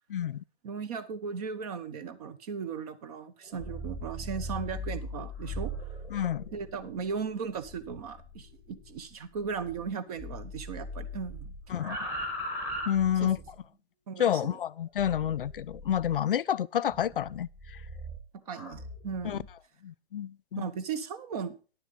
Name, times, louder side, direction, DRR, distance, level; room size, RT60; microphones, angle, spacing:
voice 1, 0.1-0.4 6.1-6.4 11.7-12.0 12.9-13.4 14.2-17.8 19.2-19.4 19.8-20.6, left 10 dB, 55° left, 0.4 m, -29 dB
voice 2, 0.6-5.7 6.5-11.5 13.2-13.3 14.1-14.6 18.5-19.5 20.6-21.6, right 6 dB, 35° right, 1.0 m, -37 dB
sound 1, 3.4-9.9 10.2-13.6 15.0-16.2 16.9-19.5, equal, 5° right, 1.7 m, -40 dB
10.5 x 7.2 x 5.5 m
figure-of-eight pair, 130°, 33 cm